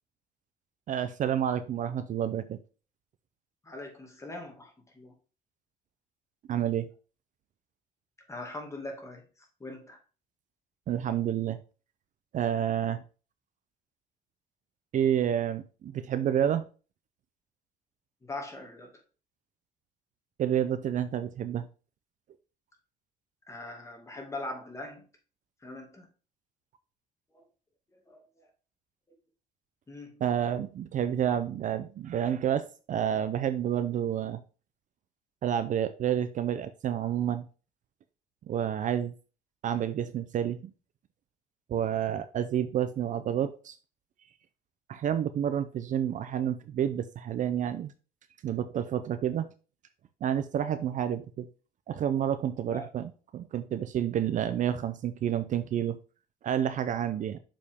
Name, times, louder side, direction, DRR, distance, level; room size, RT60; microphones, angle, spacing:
voice 1, 0.9-2.6 6.5-6.9 10.9-11.6 12.3-13.0 14.9-16.7 20.4-21.6 30.2-34.4 35.4-37.5 38.5-39.1 39.6-40.7 41.7-43.8 44.9-47.9 48.4-49.5 50.2-51.5 51.9-56.0 56.4-57.4, right 9 dB, 50° right, 0.5 m, -29 dB
voice 2, 3.6-5.1 8.3-9.2 9.6-10.0 18.2-19.0 23.5-25.1 25.6-26.1 27.3-27.4 28.1-28.2 29.9-30.2 52.7-52.9, left 2 dB, 15° left, 2.1 m, -41 dB
6.7 x 5.1 x 3.5 m
cardioid pair, 110°, 17 cm